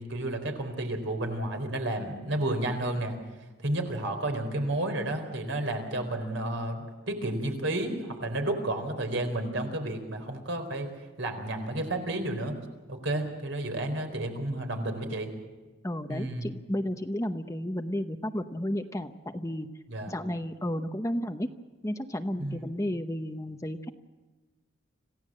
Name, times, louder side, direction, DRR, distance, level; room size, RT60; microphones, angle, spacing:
voice 1, 0.0-3.2 3.6-10.9 11.2-12.6 12.9-15.3 16.1-16.5 19.9-20.2 22.4-22.7, right 1 dB, 70° right, 5 dB, 4.2 m, -31 dB
voice 2, 15.8-19.7 20.1-21.5 21.8-23.9, equal, 15° left, 7 dB, 0.8 m, -32 dB
27.0 x 16.0 x 7.6 m, 1.2 s
head